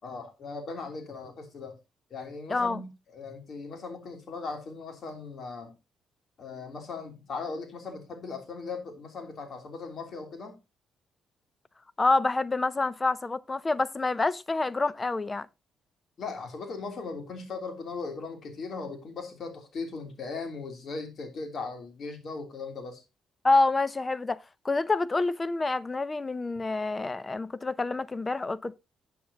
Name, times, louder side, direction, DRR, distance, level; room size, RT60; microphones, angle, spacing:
voice 1, 0.0-1.8 2.1-5.7 6.4-10.6 16.2-23.0, left 4 dB, 55° left, 3.1 m, -38 dB
voice 2, 2.5-2.8 12.0-15.5 23.4-28.7, left 3 dB, 25° left, 0.5 m, -27 dB
12.5 x 8.5 x 2.8 m
cardioid pair, 90°, 0 cm